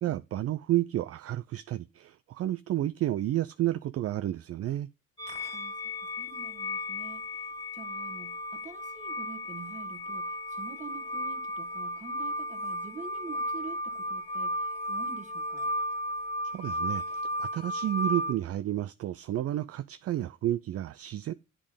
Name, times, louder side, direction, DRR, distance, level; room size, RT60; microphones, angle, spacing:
voice 1, 0.0-4.9 16.5-21.3, right 13 dB, 50° right, 0.4 m, -31 dB
sound 1, 5.2-18.3, left 1 dB, 20° left, 2.3 m, -34 dB
voice 2, 5.5-15.7, right 5 dB, 25° right, 1.3 m, -47 dB
8.6 x 3.7 x 4.9 m
cardioid pair, 90°, 30 cm